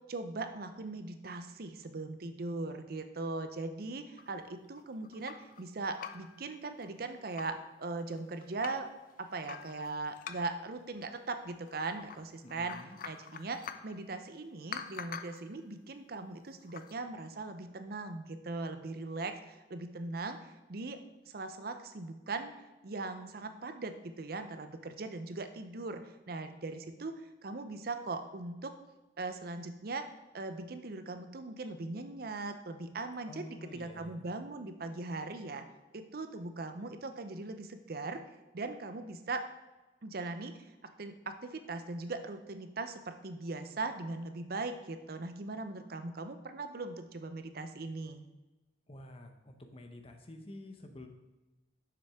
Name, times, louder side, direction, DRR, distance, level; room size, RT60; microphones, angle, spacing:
voice 1, 0.1-8.9 9.2-12.8 13.1-21.0 21.3-22.5 22.8-28.7 29.2-30.0 30.3-35.6 35.9-38.2 38.5-39.4 40.0-40.6 41.0-48.2, right 3 dB, 55° right, 8 dB, 0.6 m, -40 dB
sound 1, 4.2-5.6 5.9-6.4 6.8-6.9 7.1-7.6 8.1-8.9 9.5-10.7 11.7-12.2 12.5-14.0 14.7-15.5 16.6-16.9, left 7 dB, 50° left, 0.4 m, -46 dB
voice 2, 12.4-13.0 33.3-34.3 48.9-51.1, left 1 dB, 35° left, 5 dB, 0.8 m, -49 dB
6.9 x 6.3 x 3.6 m, 1.1 s
head